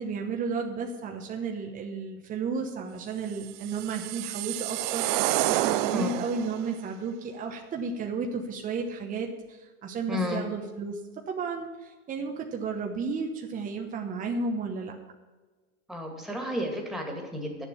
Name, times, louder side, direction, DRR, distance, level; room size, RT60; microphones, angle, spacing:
voice 1, 0.0-11.0 11.3-14.9, right 4 dB, 20° right, 2 dB, 1.0 m, -33 dB
sound 1, 3.4-6.6, right 15 dB, 40° right, 0.4 m, -29 dB
voice 2, 10.1-10.4 15.9-17.7, left 1 dB, ahead, 0 dB, 2.2 m, -32 dB
10.0 x 7.2 x 8.4 m, 1.3 s
hypercardioid pair, 135°, 43 cm